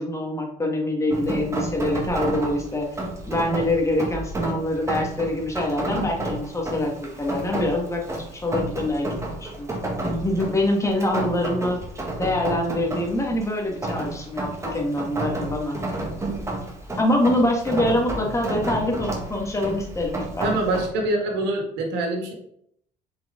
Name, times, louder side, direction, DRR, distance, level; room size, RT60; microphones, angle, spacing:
voice 1, 0.0-2.9 3.3-9.7 10.2-11.8 12.2-15.8 17.0-20.5, left 1 dB, 15° left, 1 dB, 1.7 m, -25 dB
Rain, 1.1-20.9, right 1 dB, 15° right, 1.7 m, -31 dB
voice 2, 20.4-22.3, right 2 dB, 90° right, 2 dB, 1.9 m, -25 dB
7.4 x 4.9 x 3.8 m, 0.72 s
cardioid pair, 110°, 17 cm